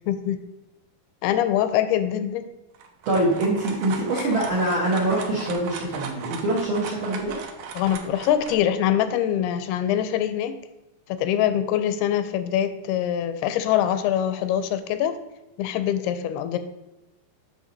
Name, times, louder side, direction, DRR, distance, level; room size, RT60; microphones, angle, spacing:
voice 1, 0.1-0.4 1.2-2.5 7.8-10.5 11.1-15.1 15.6-16.6, left 10 dB, 80° left, 10 dB, 2.5 m, -24 dB
sound 1, 2.7-8.6, right 6 dB, 90° right, 1.6 m, -37 dB
voice 2, 3.0-7.4, right 1 dB, 75° right, -4 dB, 1.2 m, -24 dB
8.0 x 6.0 x 3.9 m, 0.98 s
omnidirectional pair, 4.6 m